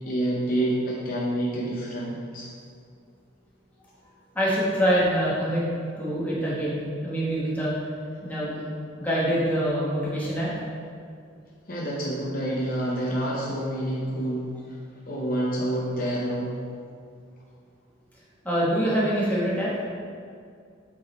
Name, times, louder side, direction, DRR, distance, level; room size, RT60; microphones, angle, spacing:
voice 1, 0.0-2.5 11.7-14.8 15.1-16.6, right 1 dB, 45° left, -4 dB, 0.7 m, -28 dB
voice 2, 4.3-5.6 6.0-7.7 8.2-8.5 9.0-10.5 18.4-19.7, equal, 10° left, -7 dB, 1.5 m, -25 dB
8.7 x 3.8 x 4.3 m, 2.3 s
head